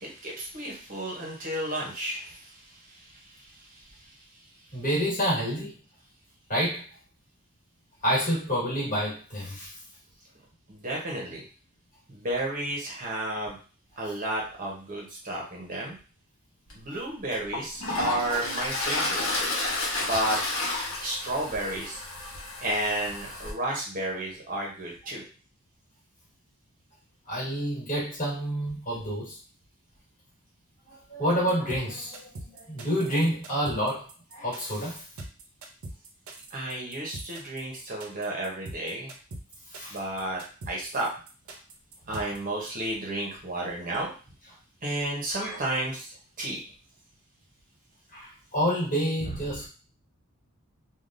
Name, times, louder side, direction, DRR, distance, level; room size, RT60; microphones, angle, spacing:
voice 1, 0.0-4.2 10.7-11.4 12.1-13.6 14.0-16.0 16.7-19.3 20.0-20.4 21.0-22.0 22.6-25.2 36.5-39.1 39.9-41.1 42.1-44.1 44.8-46.6, right 1 dB, 40° right, -2 dB, 0.8 m, -32 dB
voice 2, 4.7-5.8 6.5-6.9 8.0-9.7 27.3-29.4 30.9-34.1 34.3-35.0 39.7-40.0 45.4-45.6 48.1-49.7, equal, 40° left, -5 dB, 1.6 m, -28 dB
Toilet flush, 16.7-16.8 17.3-23.5, left 2 dB, 70° left, 1.0 m, -31 dB
sound 1, 31.5-42.4, right 2 dB, 75° right, 0.6 m, -42 dB
3.4 x 2.3 x 2.5 m, 0.37 s
head